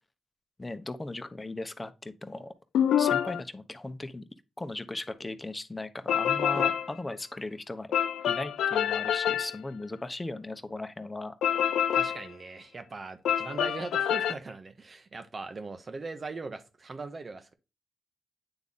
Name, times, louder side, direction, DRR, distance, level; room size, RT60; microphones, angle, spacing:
voice 1, 0.6-2.5 3.0-4.2 4.6-7.9 8.2-11.3, left 2 dB, 25° left, 1.0 m, -37 dB
sound 1, 2.7-3.4 6.1-6.9 7.9-9.6 11.4-12.3 13.2-14.3, left 9 dB, 85° left, 0.4 m, -26 dB
voice 2, 11.9-17.5, right 3 dB, 45° right, 1.2 m, -40 dB
9.0 x 3.5 x 4.1 m
supercardioid pair, 45°, 0 cm